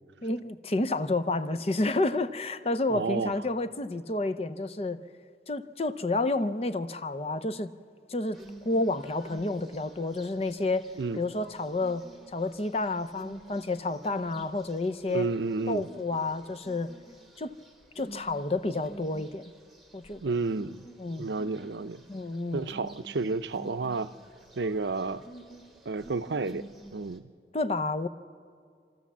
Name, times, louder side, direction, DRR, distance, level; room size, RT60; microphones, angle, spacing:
voice 1, 0.2-5.0 5.5-7.7 8.1-8.4 8.6-10.9 11.1-15.3 15.7-16.9 17.4-17.5 18.0-19.5 19.9-20.2 21.0-21.3 22.1-22.7 27.5-28.1, left 2 dB, 35° left, 0.6 m, -30 dB
voice 2, 2.9-3.4 11.0-11.2 15.1-15.9 20.2-20.9 21.2-22.0 22.5-24.1 24.6-25.2 25.9-27.2, right 3 dB, 80° right, 0.6 m, -31 dB
sound 1, 8.3-27.2, right 2 dB, ahead, 1.4 m, -50 dB
27.5 x 13.5 x 7.3 m
head